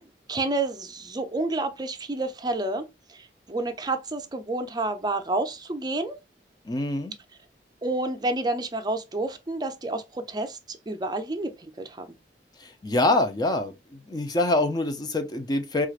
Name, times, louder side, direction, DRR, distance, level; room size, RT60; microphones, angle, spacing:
voice 1, 0.3-2.8 3.1-6.2 7.8-12.1, right 2 dB, 25° right, 0.6 m, -29 dB
voice 2, 6.6-7.1 12.6-15.9, left 2 dB, 25° left, 0.5 m, -25 dB
4.4 x 2.4 x 2.4 m
head